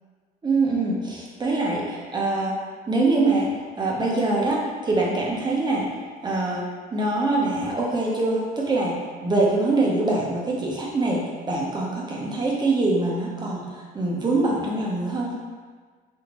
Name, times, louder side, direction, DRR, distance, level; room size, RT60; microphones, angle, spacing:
voice 1, 0.4-5.9 6.2-13.7 13.9-15.3, right 2 dB, 25° right, -3 dB, 1.0 m, -24 dB
5.3 x 2.7 x 3.1 m, 1.5 s
cardioid pair, 110°, 17 cm